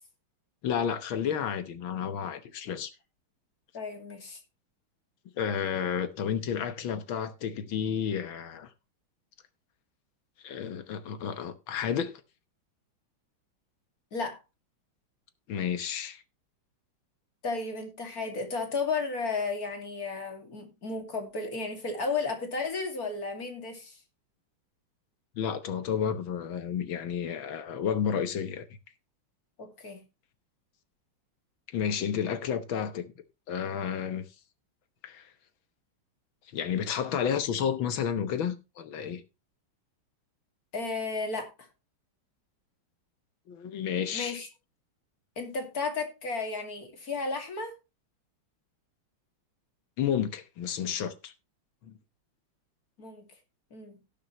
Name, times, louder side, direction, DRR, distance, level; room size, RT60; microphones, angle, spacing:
voice 1, 0.6-2.9 5.4-8.7 10.4-12.1 15.5-16.2 25.4-28.7 31.7-33.1 33.5-34.3 35.0-35.3 36.5-39.2 43.5-44.4 50.0-51.3 51.8-51.9, left 8 dB, 70° left, 1.9 m, -31 dB
voice 2, 3.7-4.4 14.1-14.4 17.4-24.0 29.6-30.0 40.7-41.5 44.1-44.5 45.4-47.7 53.0-53.2 53.7-54.0, left 4 dB, 45° left, 2.9 m, -33 dB
18.0 x 6.7 x 3.1 m
omnidirectional pair, 2.3 m